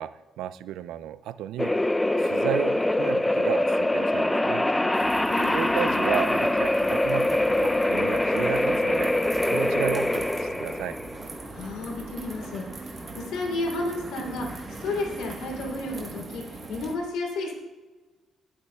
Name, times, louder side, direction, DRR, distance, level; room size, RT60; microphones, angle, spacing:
voice 1, 0.0-1.8 2.2-4.7 5.5-9.2 9.5-11.0, right 11 dB, 85° right, 15 dB, 0.3 m, -33 dB
sound 1, 1.6-16.1, left 1 dB, 10° left, 0.4 m, -24 dB
sound 2, 4.9-17.0, right 3 dB, 35° right, 1.2 m, -40 dB
voice 2, 5.3-5.9 11.5-17.5, left 2 dB, 90° left, -1 dB, 2.9 m, -32 dB
16.5 x 8.5 x 2.3 m, 1.3 s
cardioid pair, 90°, 0 cm